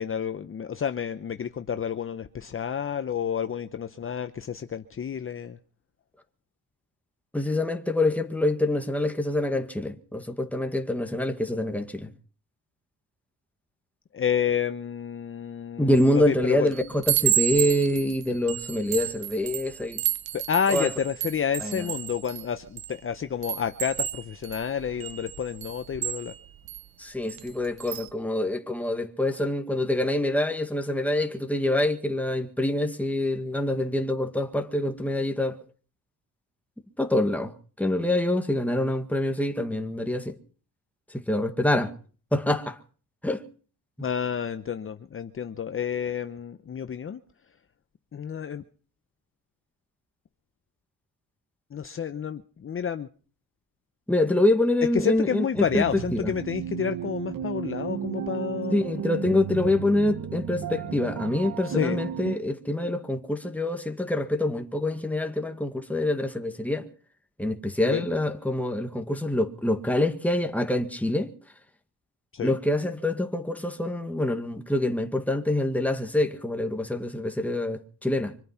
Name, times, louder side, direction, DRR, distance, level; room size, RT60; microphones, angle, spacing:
voice 1, 0.0-5.6 14.1-16.7 20.3-26.3 44.0-47.2 48.1-48.6 51.7-53.1 54.9-59.0 61.7-62.0 67.8-68.1 72.3-72.6, left 8 dB, 35° left, 0.8 m, -30 dB
voice 2, 7.3-12.1 15.8-20.0 20.7-20.9 21.6-21.9 27.0-35.6 37.0-40.4 41.1-41.9 42.3-42.8 43.2-43.4 54.1-56.3 58.7-66.9 67.4-71.3 72.4-78.3, left 1 dB, 5° left, 1.8 m, -26 dB
Chime, 16.0-16.3 16.7-23.0 23.4-26.8 27.3-27.5 27.8-28.1, right 12 dB, 85° right, 1.1 m, -31 dB
sound 1, 55.5-62.4, right 9 dB, 70° right, 1.0 m, -34 dB
25.5 x 9.1 x 5.8 m
cardioid pair, 115°, 36 cm